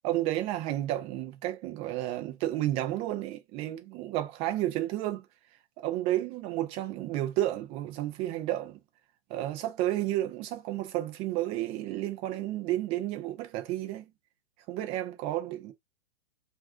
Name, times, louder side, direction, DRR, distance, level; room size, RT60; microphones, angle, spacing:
voice 1, 0.0-5.3 5.8-8.8 9.3-14.1 14.7-15.7, right 14 dB, 20° right, 0.4 m, -31 dB
2.5 x 2.3 x 3.4 m
hypercardioid pair, 120°, 31 cm